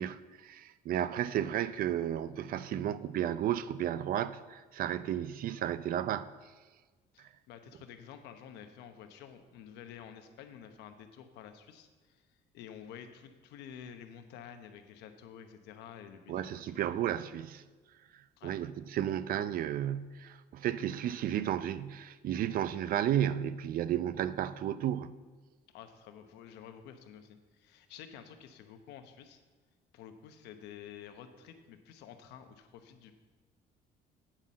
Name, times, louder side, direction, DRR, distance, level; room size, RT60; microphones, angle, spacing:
voice 1, 0.0-6.3 16.3-17.6 18.4-25.1, right 10 dB, 60° right, 0.5 m, -33 dB
voice 2, 7.1-17.0 18.4-18.5 25.7-29.4 29.9-33.1, left 8 dB, 85° left, 1.0 m, -50 dB
8.8 x 5.5 x 7.4 m
cardioid pair, 110°, 17 cm